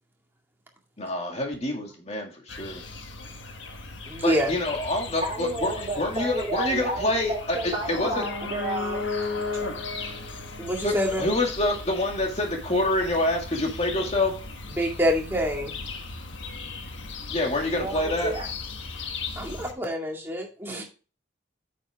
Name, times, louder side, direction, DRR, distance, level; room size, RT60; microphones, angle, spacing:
voice 1, 1.0-2.8 4.2-8.2 10.8-14.3 17.3-18.3, left 1 dB, 35° left, 1 dB, 2.3 m, -27 dB
sound 1, 2.5-19.7, left 4 dB, 80° left, 1.3 m, -36 dB
voice 2, 4.1-4.5 10.6-11.2 14.8-15.7 19.4-20.9, equal, 10° right, 0 dB, 2.1 m, -26 dB
voice 3, 5.2-9.1 17.7-18.4, right 2 dB, 30° right, -7 dB, 3.1 m, -31 dB
8.8 x 6.9 x 3.5 m, 0.35 s
head